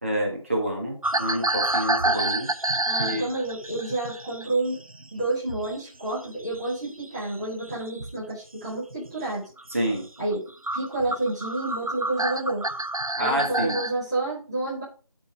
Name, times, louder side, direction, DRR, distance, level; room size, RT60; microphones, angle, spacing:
voice 1, 0.0-2.5 3.0-3.2 9.7-10.1 13.2-13.8, equal, 25° right, -2 dB, 1.8 m, -27 dB
sound 1, 1.0-5.8 6.1-8.2 8.8-9.1 9.6-9.7 10.3-10.4 10.6-13.9, right 2 dB, 85° right, 0.9 m, -28 dB
voice 2, 2.9-4.8 5.1-9.5 10.2-10.5 10.7-12.7 13.2-14.8, right 2 dB, 10° right, -12 dB, 1.7 m, -29 dB
11.5 x 4.4 x 4.6 m, 0.36 s
figure-of-eight pair, 170°, 17 cm